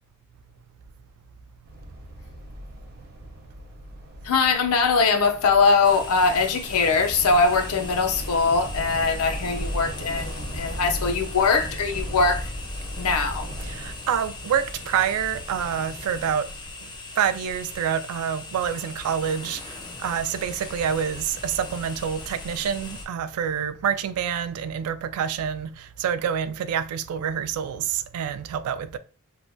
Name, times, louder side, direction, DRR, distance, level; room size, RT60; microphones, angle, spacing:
sound 1, 1.7-13.9, equal, 45° right, 0.7 m, -36 dB
voice 1, 4.2-12.5 13.0-13.5, left 4 dB, 80° left, 0.5 m, -21 dB
sound 2, 5.8-23.1, left 2 dB, 20° left, 0.4 m, -39 dB
voice 2, 13.6-16.5 17.2-19.7 20.0-29.0, right 8 dB, 85° right, 0.3 m, -27 dB
3.1 x 2.2 x 2.6 m
head